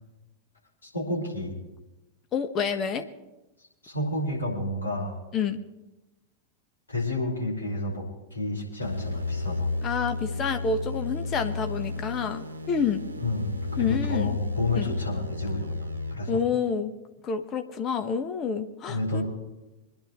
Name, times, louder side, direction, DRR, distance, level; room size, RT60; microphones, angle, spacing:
voice 1, 0.8-1.5 3.8-5.2 6.9-8.1 8.3-9.8 13.2-16.4 18.9-19.2, left 1 dB, 75° left, -3 dB, 5.5 m, -30 dB
voice 2, 2.3-3.0 5.3-5.6 9.8-13.0 13.8-14.4 14.8-14.9 16.3-16.9 17.2-19.2, left 6 dB, 30° left, 7 dB, 1.3 m, -28 dB
sound 1, 8.8-16.2, left 3 dB, 75° right, 1.0 m, -33 dB
26.5 x 10.5 x 3.2 m, 1.0 s
figure-of-eight pair, 90°, 0 cm